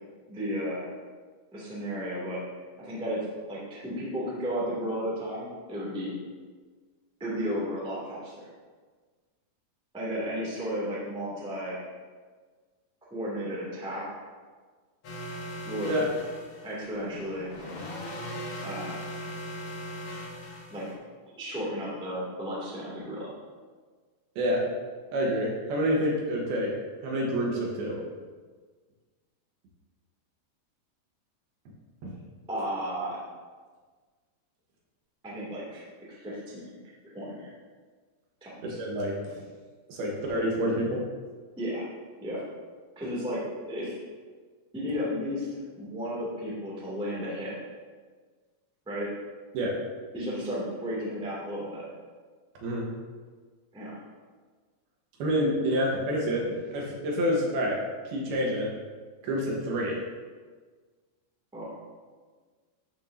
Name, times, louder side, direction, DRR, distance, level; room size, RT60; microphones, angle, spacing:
voice 1, 0.3-0.9 1.5-2.4 2.8-6.2 7.2-8.5 9.9-11.8 13.1-14.2 15.6-16.1 16.6-17.5 18.6-19.0 20.7-20.9 21.3-23.3 32.5-33.2 35.2-35.8 36.2-36.7 37.0-37.5 38.4-38.8 41.6-41.9 42.2-42.5 42.9-44.0 44.7-45.5 45.7-47.5 48.8-49.1 50.1-51.8 53.7-54.0 61.5-61.7, equal, ahead, -6 dB, 1.3 m, -33 dB
sound 1, 15.0-20.9, equal, 80° left, 1.3 m, -39 dB
voice 2, 25.1-26.7 27.0-28.0 32.0-32.1 38.6-39.2 39.9-41.0 49.5-49.8 52.6-52.9 55.2-57.8 58.1-58.7 59.2-60.0, equal, 70° right, -2 dB, 3.0 m, -28 dB
13.5 x 6.0 x 2.8 m, 1.5 s
omnidirectional pair, 4.8 m